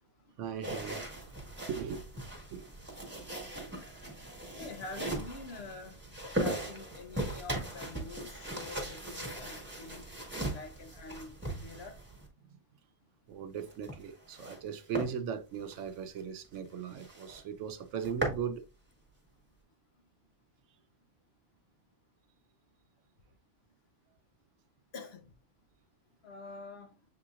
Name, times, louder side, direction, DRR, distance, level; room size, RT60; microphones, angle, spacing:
voice 1, 0.4-1.1 1.7-2.0 2.5-2.7 3.1-3.3 13.3-18.6, right 7 dB, 80° right, 1.0 m, -38 dB
sound 1, 0.6-12.3 13.6-14.6 14.9-15.1 15.6-15.8 16.2-16.3 16.6-16.7 17.0-17.4 17.8-18.4, right 1 dB, 10° right, 1.4 m, -39 dB
voice 2, 4.6-6.0 6.4-10.1 10.5-12.0 24.9-25.3 26.2-26.9, left 3 dB, 65° left, 0.9 m, -46 dB
7.3 x 2.9 x 2.4 m
omnidirectional pair, 1.2 m